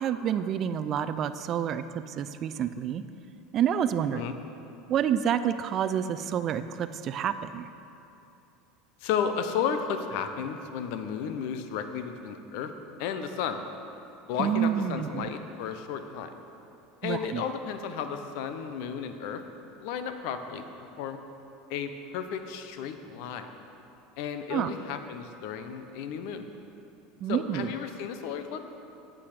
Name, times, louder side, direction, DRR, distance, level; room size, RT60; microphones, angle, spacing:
voice 1, 0.0-1.8 2.2-3.0 3.5-4.2 4.9-7.6 14.4-15.3 17.0-17.4 24.5-24.7 27.2-27.7, right 9 dB, 45° right, 12 dB, 0.4 m, -28 dB
voice 2, 9.0-12.7 13.0-13.6 14.3-16.4 17.0-19.4 19.8-20.6 21.0-21.2 21.7-23.5 24.2-26.5 27.3-28.6, left 7 dB, 70° left, 8 dB, 0.7 m, -33 dB
8.5 x 8.5 x 5.0 m, 2.8 s
supercardioid pair, 110°, 0 cm